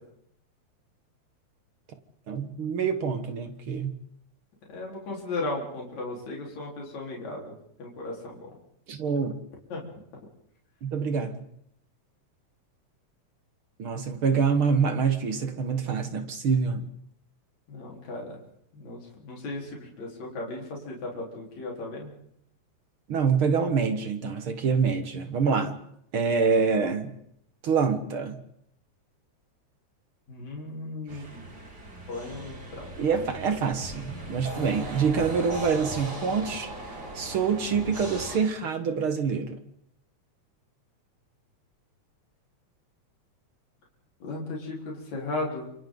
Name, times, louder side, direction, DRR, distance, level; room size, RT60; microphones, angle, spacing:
voice 1, 2.3-3.9 8.9-9.4 10.8-11.4 13.8-16.9 23.1-25.8 26.1-27.2 27.6-28.4 33.0-36.7 37.2-39.6, right 5 dB, 50° right, 2.0 m, -26 dB
voice 2, 4.7-8.6 9.7-9.8 17.7-18.4 18.7-22.1 30.3-31.4 32.1-33.7 44.2-45.7, left 2 dB, 65° left, 5.5 m, -36 dB
sound 1, 31.1-38.4, right 1 dB, 30° right, 4.1 m, -38 dB
30.0 x 27.5 x 4.0 m
omnidirectional pair, 3.5 m